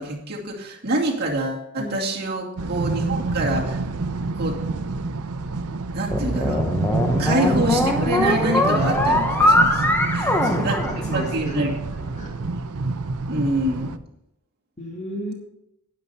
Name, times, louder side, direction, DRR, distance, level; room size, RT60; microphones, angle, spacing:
voice 1, 0.0-3.9 4.4-4.6 5.9-6.6 7.2-10.3 10.6-11.7 13.3-13.9, right 1 dB, 45° right, -3 dB, 2.6 m, -26 dB
sound 1, 2.6-14.0, right 3 dB, 85° right, 0.7 m, -27 dB
sound 2, 6.1-11.6, left 1 dB, 10° left, 1.0 m, -21 dB
voice 2, 10.2-11.6 12.2-12.3 14.8-15.3, right 1 dB, 30° left, -1 dB, 2.1 m, -34 dB
12.5 x 9.6 x 4.3 m, 0.84 s
head